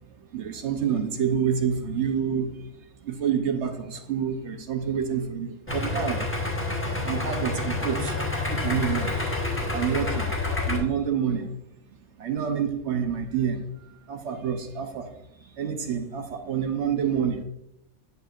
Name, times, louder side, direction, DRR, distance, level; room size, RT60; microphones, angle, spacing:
voice 1, 0.2-2.7 3.0-6.3 7.0-9.1 9.7-10.3 10.6-11.6 12.2-13.6 14.1-17.4, right 7 dB, 60° right, 6 dB, 1.0 m, -28 dB
Idling, 5.7-10.8, left 2 dB, 10° left, 1.0 m, -28 dB
8.8 x 6.6 x 2.5 m, 0.81 s
omnidirectional pair, 1.5 m